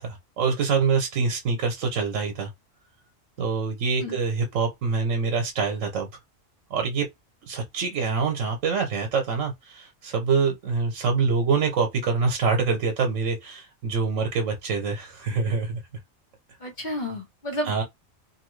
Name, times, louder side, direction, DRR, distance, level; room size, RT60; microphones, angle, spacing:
voice 1, 0.0-2.5 3.4-6.1 6.7-7.1 7.5-15.8 17.6-17.8, right 5 dB, 75° right, 1.1 m, -25 dB
voice 2, 16.6-17.8, equal, 40° left, 1.2 m, -31 dB
2.7 x 2.6 x 3.1 m
omnidirectional pair, 1.3 m